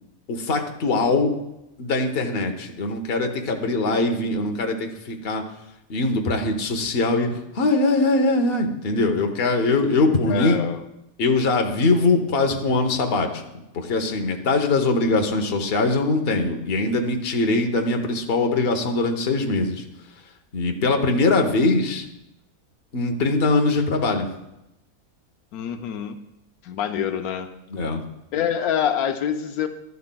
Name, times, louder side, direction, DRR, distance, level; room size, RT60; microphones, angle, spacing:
voice 1, 0.3-1.4 1.8-5.4 5.9-10.6 11.2-13.4 13.7-19.8 20.5-22.0 22.9-24.3 27.7-28.0, left 3 dB, 45° left, 5 dB, 1.1 m, -22 dB
voice 2, 10.2-10.8 25.5-26.2 26.6-27.5 28.3-29.7, left 9 dB, 85° left, 7 dB, 1.1 m, -26 dB
12.0 x 11.0 x 2.2 m, 0.89 s
omnidirectional pair, 1.5 m